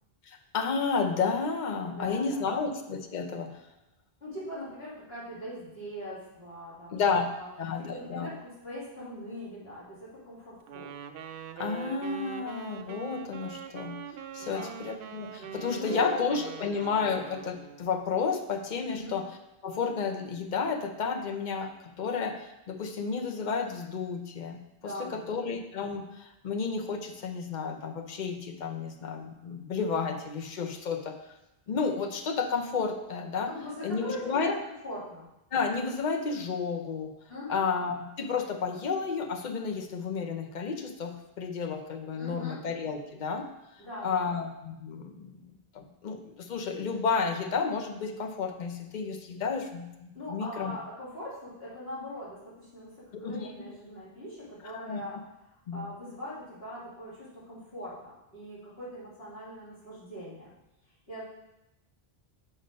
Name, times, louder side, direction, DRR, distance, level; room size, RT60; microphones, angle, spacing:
voice 1, 0.3-3.6 6.9-7.3 7.6-8.3 11.6-14.0 14.3-19.3 19.6-31.2 31.7-33.5 33.8-34.5 35.5-37.1 37.5-43.5 44.0-45.4 45.7-50.7 53.2-53.5 54.7-55.0 55.7-55.8, left 5 dB, 50° left, 5 dB, 0.8 m, -31 dB
voice 2, 1.8-2.6 4.2-7.0 7.4-7.5 7.9-10.9 14.4-14.7 15.6-16.2 16.8-16.9 18.9-19.2 24.8-25.5 33.4-34.6 34.8-35.3 37.3-37.7 42.1-42.6 43.8-44.4 50.1-53.0 53.2-55.2 55.7-60.5 61.1-61.2, equal, 75° left, -9 dB, 3.1 m, -41 dB
Wind instrument woodwind instrument, 10.7-17.9, right 7 dB, 65° right, 0.7 m, -42 dB
6.3 x 5.2 x 5.2 m, 0.90 s
omnidirectional pair, 1.0 m